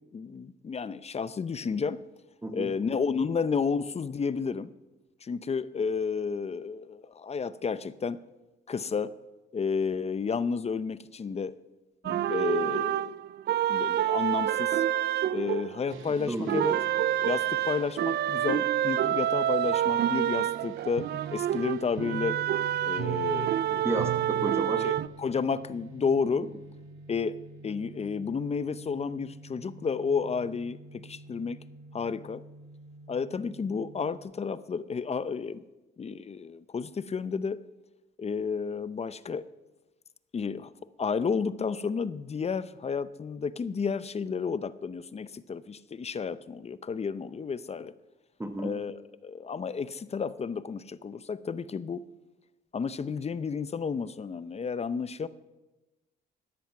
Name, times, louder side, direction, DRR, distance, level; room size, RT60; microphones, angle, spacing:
voice 1, 0.1-2.0 2.5-4.7 5.2-8.2 8.7-9.1 9.5-11.5 12.0-13.1 13.7-14.8 15.3-16.7 17.2-22.4 22.8-23.8 24.8-26.5 27.1-27.4 27.6-31.6 31.9-32.4 33.1-35.6 36.0-37.6 38.2-39.4 40.3-40.7 41.0-47.9 48.6-52.0 52.7-55.3, left 5 dB, 30° left, 16 dB, 0.6 m, -31 dB
voice 2, 2.4-2.7 16.0-16.8 23.8-24.9 48.4-48.8, right 1 dB, 15° right, 7 dB, 1.2 m, -33 dB
sound 1, 12.0-16.1 16.5-25.1, right 11 dB, 55° right, 0.4 m, -28 dB
sound 2, 15.9-34.2, right 2 dB, 85° right, 2.0 m, -50 dB
13.5 x 10.5 x 5.9 m, 1.1 s
cardioid pair, 90°, 20 cm